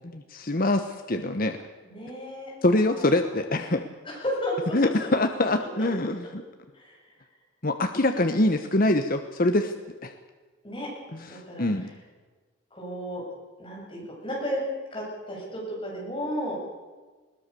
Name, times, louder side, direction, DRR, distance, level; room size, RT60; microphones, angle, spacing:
voice 1, 0.1-1.6 2.6-3.8 4.7-6.4 7.6-9.7 10.0-10.1 11.1-11.9, left 1 dB, 45° left, 7 dB, 1.1 m, -24 dB
voice 2, 1.8-3.1 4.0-4.9 5.8-5.9 6.7-7.0 10.6-10.9 11.3-11.7 12.7-13.2 13.6-14.6 14.9-16.6, equal, 25° left, -3 dB, 7.6 m, -33 dB
21.5 x 19.0 x 6.9 m, 1.4 s
head